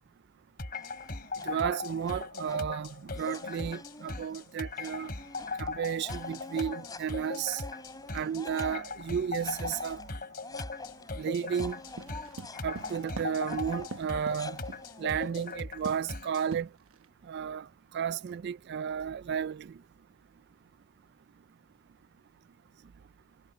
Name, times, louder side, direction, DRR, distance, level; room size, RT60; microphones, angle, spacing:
sound 1, 0.6-16.5, left 3 dB, 45° left, 3.0 m, -39 dB
sound 2, 0.7-1.6 2.0-2.8 3.2-9.1 9.4-15.2, left 3 dB, 15° left, 5.6 m, -47 dB
voice 1, 1.4-5.1 5.6-7.6 8.1-10.0 11.2-11.8 12.6-14.6 15.0-16.7 17.3-17.7 17.9-19.7, right 7 dB, 50° right, 0.3 m, -33 dB
sound 3, 11.6-14.8 15.2-15.5 15.9-16.2 16.5-17.1, right 3 dB, 75° right, 1.1 m, -42 dB
head